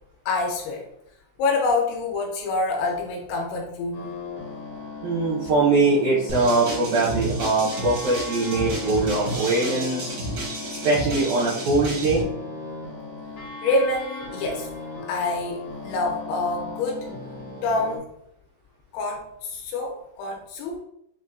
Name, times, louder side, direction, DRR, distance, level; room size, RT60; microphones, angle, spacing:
voice 1, 0.3-0.9 1.4-4.1 13.6-14.7 15.0-17.1 17.6-18.1 18.9-20.8, left 3 dB, 80° left, 0 dB, 2.8 m, -26 dB
sound 1, 3.9-18.0, left 3 dB, 55° left, 1.8 m, -37 dB
voice 2, 5.0-10.0 10.8-12.2, right 3 dB, 80° right, -9 dB, 2.0 m, -22 dB
sound 2, 6.3-12.2, right 1 dB, 65° right, 2.1 m, -31 dB
7.1 x 2.5 x 2.3 m, 0.78 s
omnidirectional pair, 5.5 m